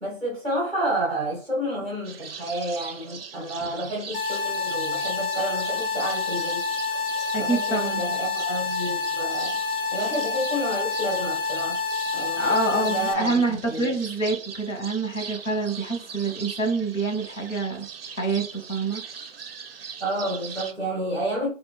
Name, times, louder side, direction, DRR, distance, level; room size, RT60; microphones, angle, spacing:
voice 1, 0.0-6.7 7.4-9.6 9.9-11.8 12.1-13.9 20.0-21.5, right 1 dB, 5° left, 0.7 m, -30 dB
sound 1, 2.0-20.7, right 6 dB, 50° right, 0.5 m, -40 dB
sound 2, 4.1-13.1, left 4 dB, 50° left, 0.6 m, -28 dB
voice 2, 7.3-8.0 12.4-17.9 18.2-19.0, right 3 dB, 80° left, 1.7 m, -26 dB
3.2 x 2.4 x 3.4 m
figure-of-eight pair, 150°, 38 cm